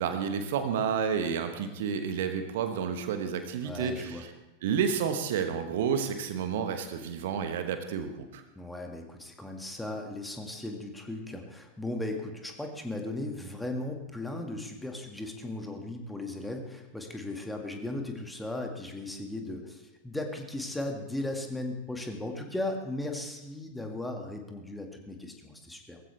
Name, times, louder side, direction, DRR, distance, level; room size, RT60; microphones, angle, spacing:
voice 1, 0.0-4.3 4.6-8.4, right 7 dB, 55° right, 7 dB, 1.2 m, -30 dB
voice 2, 3.6-4.2 8.6-26.0, left 2 dB, 5° left, 3 dB, 1.9 m, -37 dB
19.0 x 15.0 x 3.4 m, 1.0 s
figure-of-eight pair, 90°, 0 cm